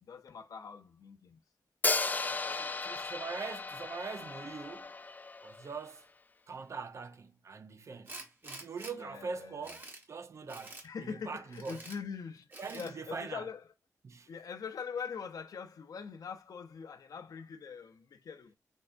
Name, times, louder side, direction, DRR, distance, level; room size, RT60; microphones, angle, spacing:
voice 1, 0.0-1.4 2.4-2.7 8.9-9.8 10.8-13.7 14.3-18.5, left 6 dB, 75° left, 0.7 m, -43 dB
Hi-hat, 1.8-5.8, left 3 dB, 30° left, 0.3 m, -35 dB
voice 2, 2.3-5.0 5.4-6.1 6.5-11.8 12.6-13.4 14.0-14.3, right 5 dB, 50° right, 0.5 m, -43 dB
Tools, 8.1-8.9 9.4-10.0 10.5-10.9 11.5-12.0 12.5-12.9, right 2 dB, 30° right, 1.1 m, -47 dB
5.3 x 3.4 x 2.5 m
wide cardioid pair, 105°, 6 cm